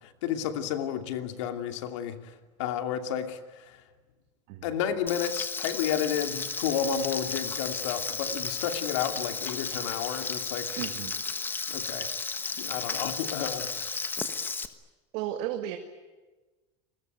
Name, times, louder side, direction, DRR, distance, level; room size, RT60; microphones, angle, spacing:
voice 1, 0.0-3.8 4.6-10.8 11.7-12.1 12.6-14.0, left 9 dB, 80° left, 7 dB, 2.7 m, -32 dB
Frying (food), 5.1-14.7, left 4 dB, 15° left, 1.3 m, -34 dB
voice 2, 10.8-11.2 15.1-15.8, right 12 dB, 60° right, 5 dB, 2.1 m, -33 dB
30.0 x 20.5 x 9.2 m, 1.2 s
supercardioid pair, 155°, 15 cm